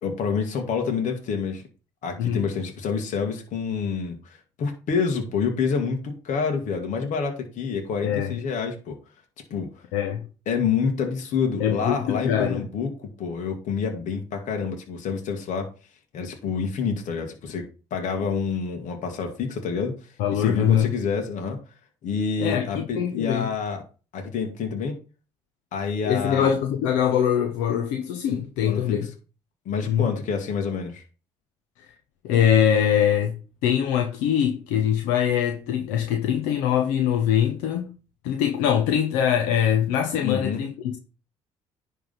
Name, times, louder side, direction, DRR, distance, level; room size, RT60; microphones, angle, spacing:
voice 1, 0.0-1.6 2.0-9.0 9.5-9.8 10.5-15.7 16.1-20.0 20.3-21.6 22.0-23.8 24.1-25.0 25.7-26.5 28.6-29.0 29.7-31.0 40.2-40.6, left 5 dB, 65° left, 1.9 m, -27 dB
voice 2, 9.9-10.3 11.6-12.6 20.2-20.9 22.4-23.5 26.0-29.1 29.9-30.1 32.2-37.9 38.2-41.0, left 9 dB, 80° left, 1.0 m, -23 dB
10.0 x 3.7 x 5.6 m
hypercardioid pair, 60°, 14 cm